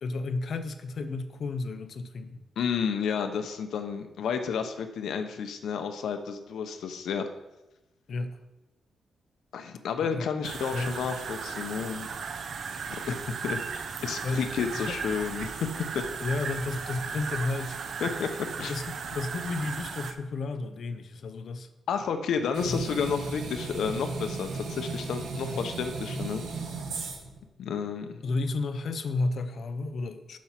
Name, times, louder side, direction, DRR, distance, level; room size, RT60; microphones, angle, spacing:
voice 1, 0.0-2.4 8.1-8.4 10.0-10.3 10.7-11.0 14.2-14.5 14.7-15.0 16.2-17.8 18.6-21.7 22.6-22.8 25.4-25.6 28.2-30.4, left 3 dB, 50° left, 10 dB, 0.6 m, -32 dB
voice 2, 2.6-7.2 9.5-12.1 13.1-15.7 15.9-16.0 18.0-18.3 18.6-18.7 21.9-26.4 27.6-28.2, left 6 dB, 75° left, 7 dB, 0.8 m, -31 dB
sound 1, 10.4-20.1, right 5 dB, 50° right, 0.6 m, -36 dB
sound 2, 22.5-27.4, right 3 dB, 90° right, 1.3 m, -36 dB
7.2 x 6.0 x 5.9 m, 1.0 s
wide cardioid pair, 170°, 0 cm